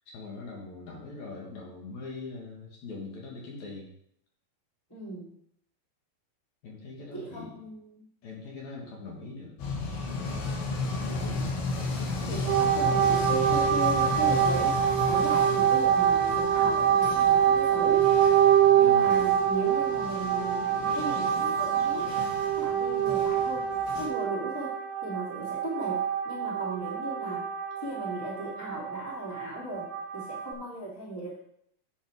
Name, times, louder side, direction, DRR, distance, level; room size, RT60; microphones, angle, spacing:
voice 1, 0.1-3.9 6.6-7.6 8.2-9.6 18.8-19.3, left 3 dB, 60° left, -2 dB, 2.6 m, -41 dB
voice 2, 4.9-5.3 7.1-8.0 11.1-11.4 12.3-18.1 18.7-22.1 22.6-23.7 23.9-27.5 27.8-31.4, right 2 dB, 10° left, -4 dB, 1.2 m, -37 dB
sound 1, 9.6-24.1, left 3 dB, 80° left, 3.2 m, -35 dB
sound 2, 12.5-30.5, right 9 dB, 75° right, 2.3 m, -25 dB
8.3 x 5.6 x 4.7 m, 0.69 s
omnidirectional pair, 4.2 m